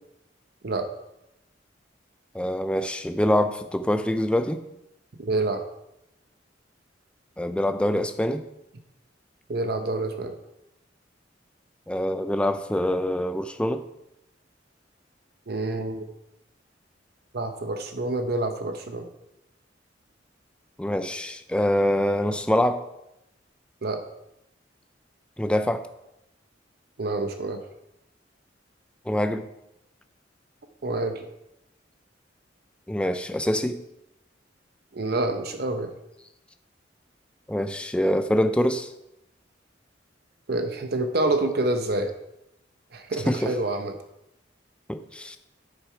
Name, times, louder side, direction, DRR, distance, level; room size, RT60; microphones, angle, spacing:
voice 1, 2.3-4.6 7.4-8.4 11.9-13.9 20.8-22.8 25.4-25.8 29.1-29.5 32.9-33.8 37.5-38.9 43.1-43.6 44.9-45.4, left 1 dB, 5° left, 9 dB, 0.3 m, -25 dB
voice 2, 5.2-5.6 9.5-10.4 15.5-16.1 17.3-19.1 23.8-24.0 27.0-27.6 30.8-31.2 34.9-35.9 40.5-42.1 42.9-43.9, right 2 dB, 55° right, 7 dB, 0.7 m, -27 dB
8.8 x 6.8 x 4.6 m, 0.87 s
head